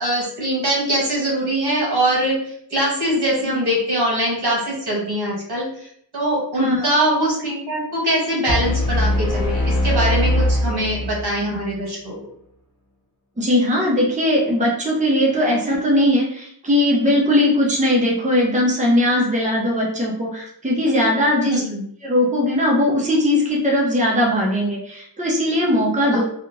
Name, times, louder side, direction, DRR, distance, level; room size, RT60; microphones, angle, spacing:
voice 1, 0.0-5.9 6.1-12.1 21.4-21.8 26.0-26.2, right 1 dB, 65° right, -4 dB, 1.5 m, -22 dB
voice 2, 6.6-6.9 13.4-21.5 22.0-26.2, left 1 dB, 15° right, -3 dB, 0.9 m, -19 dB
sound 1, 8.5-11.5, left 1 dB, 45° left, 1.0 m, -21 dB
3.4 x 2.4 x 2.8 m, 0.68 s
wide cardioid pair, 55°, 41 cm